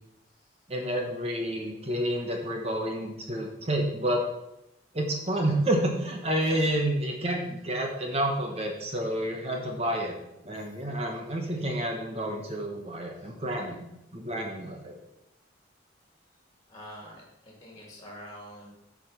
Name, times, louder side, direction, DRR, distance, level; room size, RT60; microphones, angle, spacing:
voice 1, 0.7-4.2 4.9-10.1 10.4-13.8 14.1-14.9, right 1 dB, 30° right, 1 dB, 1.2 m, -29 dB
voice 2, 16.7-18.7, equal, 20° left, -2 dB, 2.6 m, -46 dB
8.6 x 5.1 x 5.7 m, 0.86 s
head